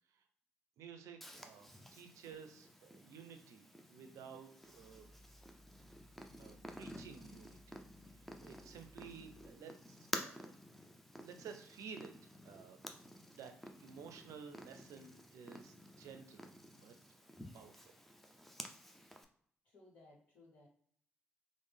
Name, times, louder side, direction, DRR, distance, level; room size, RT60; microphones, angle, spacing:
voice 1, 0.8-5.1 6.4-7.8 8.4-10.6 11.2-12.1 12.4-12.8 13.3-13.5 13.8-16.5 16.8-16.9 17.5-17.8, right 6 dB, 70° right, 6 dB, 0.5 m, -53 dB
Purr, 1.2-19.2, equal, 5° left, 0.5 m, -51 dB
Growling, 4.6-9.6, equal, 25° left, 1.1 m, -63 dB
voice 2, 19.6-20.7, left 2 dB, 75° left, -8 dB, 0.9 m, -62 dB
3.2 x 2.1 x 3.3 m, 0.63 s
hypercardioid pair, 40°, 6 cm